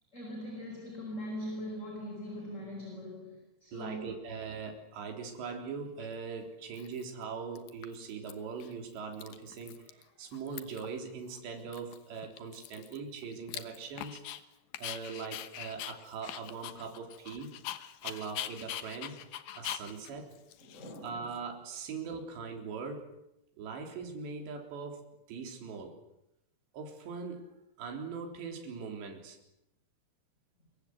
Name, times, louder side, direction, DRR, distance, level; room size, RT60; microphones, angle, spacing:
voice 1, 0.1-4.1 20.6-21.3, equal, 15° left, 2 dB, 4.8 m, -41 dB
voice 2, 3.7-14.2 14.8-17.6 18.0-19.2 19.6-20.3 21.0-23.1 23.6-26.0 26.7-27.5 27.8-29.4, right 5 dB, 60° right, 2 dB, 5.7 m, -41 dB
Dog, 6.0-6.1 6.7-7.2 7.6-8.3 8.6-8.7 9.0-10.0 10.3-10.9 11.3-11.4 11.7-14.4 14.7-21.4, left 12 dB, 70° left, 2.3 m, -43 dB
26.0 x 22.5 x 8.0 m, 0.83 s
omnidirectional pair, 5.7 m